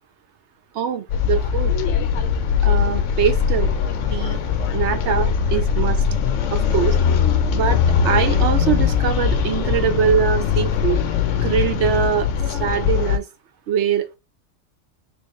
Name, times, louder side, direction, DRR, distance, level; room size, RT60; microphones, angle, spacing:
voice 1, 0.7-1.8 2.6-3.7 4.0-4.4 4.7-6.0 6.5-7.0 7.5-11.0 11.3-13.2 13.7-14.2, right 8 dB, 65° right, 0.8 m, -23 dB
sound 1, 1.1-13.2, left 7 dB, 70° left, 0.9 m, -20 dB
3.5 x 3.0 x 3.0 m
omnidirectional pair, 1.4 m